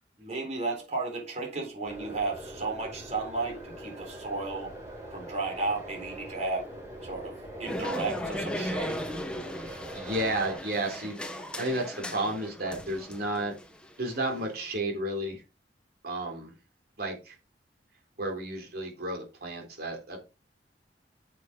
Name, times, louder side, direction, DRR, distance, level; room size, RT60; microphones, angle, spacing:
voice 1, 0.2-4.7 5.1-6.7 7.0-9.1, right 3 dB, 40° right, 4.0 m, -33 dB
sound 1, 1.9-10.6, right 1 dB, 15° right, 5.3 m, -42 dB
sound 2, 7.6-14.8, equal, 5° left, 1.2 m, -37 dB
voice 2, 9.6-11.2 11.6-13.5 14.0-15.4 16.0-16.5 17.0-17.3 18.2-20.2, right 1 dB, 60° right, 3.7 m, -32 dB
9.3 x 6.8 x 3.8 m
head